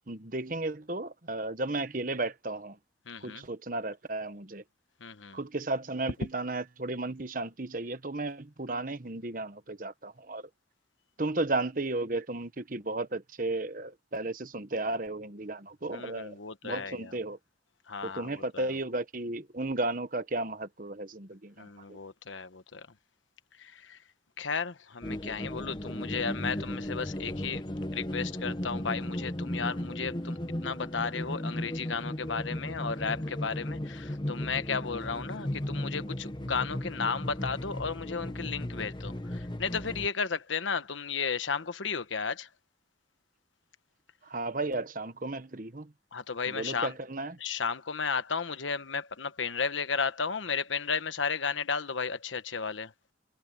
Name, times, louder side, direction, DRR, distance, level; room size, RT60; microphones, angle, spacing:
voice 1, 0.1-2.8 3.2-4.6 5.3-10.4 11.2-16.4 16.6-17.4 18.0-22.0 44.3-45.9 46.5-47.3, right 2 dB, 45° right, 1.2 m, -34 dB
voice 2, 3.1-3.4 5.0-5.4 15.9-17.1 17.9-18.7 21.6-22.9 23.6-24.0 24.4-27.6 27.9-42.5 46.1-46.9 47.4-52.9, left 5 dB, 90° left, 1.2 m, -34 dB
sound 1, 25.0-40.1, left 1 dB, 25° left, 1.0 m, -36 dB
head